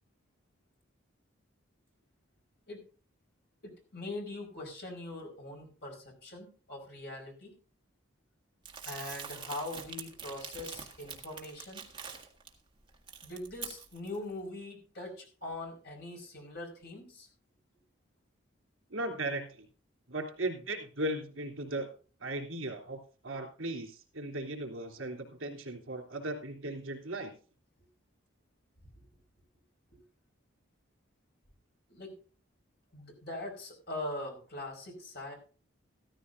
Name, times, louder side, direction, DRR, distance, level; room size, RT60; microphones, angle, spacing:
voice 1, 3.6-7.6 8.8-11.9 13.2-17.3 28.8-28.9 29.9-30.0 31.9-32.2 32.9-35.3, left 2 dB, 50° left, 1 dB, 5.2 m, -42 dB
Crumpling crinkling, 8.7-12.5 12.9-14.2, right 6 dB, 25° right, 1.7 m, -45 dB
voice 2, 18.9-19.7 20.1-21.9 22.2-27.3, right 1 dB, 80° right, 3 dB, 3.2 m, -37 dB
14.5 x 14.0 x 2.7 m, 0.38 s
head